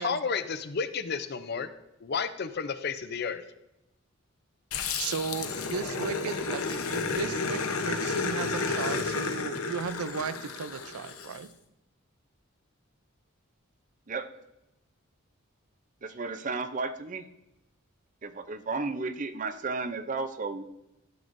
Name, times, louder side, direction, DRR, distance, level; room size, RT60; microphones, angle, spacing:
voice 1, 0.0-1.7 2.0-3.4, left 5 dB, 50° left, 11 dB, 0.5 m, -31 dB
Growling, 4.7-11.4, left 4 dB, 80° left, 0.9 m, -32 dB
voice 2, 5.0-11.5, right 6 dB, 90° right, 14 dB, 0.5 m, -35 dB
voice 3, 16.0-17.3 18.2-20.6, right 3 dB, 35° right, 10 dB, 0.5 m, -33 dB
12.5 x 7.7 x 2.6 m, 0.89 s
head